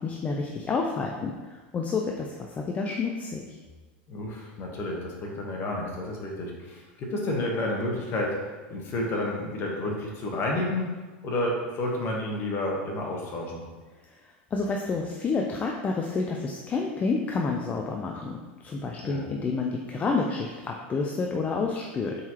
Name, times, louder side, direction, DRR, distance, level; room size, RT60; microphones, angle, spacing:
voice 1, 0.0-3.6 14.0-22.2, left 4 dB, 25° left, 1 dB, 0.4 m, -29 dB
voice 2, 4.1-8.4 8.7-10.9 11.2-13.6 19.0-19.2, left 1 dB, 40° left, -1 dB, 1.1 m, -30 dB
4.2 x 3.8 x 2.9 m, 1.3 s
hypercardioid pair, 110°, 6 cm